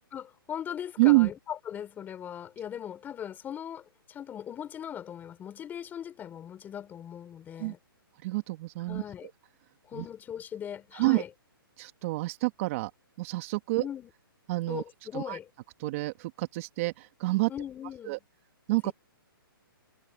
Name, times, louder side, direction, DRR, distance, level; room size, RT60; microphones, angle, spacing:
voice 1, 0.1-7.8 8.9-9.3 9.8-11.3 13.8-14.1 14.7-15.5 17.5-18.2 18.8-18.9, left 9 dB, 15° left, 5.4 m, -39 dB
voice 2, 1.0-1.3 7.6-7.7 8.2-9.0 9.9-10.0 10.9-11.2 11.8-12.9 13.2-13.9 14.5-14.8 15.1-15.4 15.8-17.5 18.1-18.2 18.7-18.9, right 22 dB, 35° right, 1.7 m, -27 dB
hypercardioid pair, 150°, 12 cm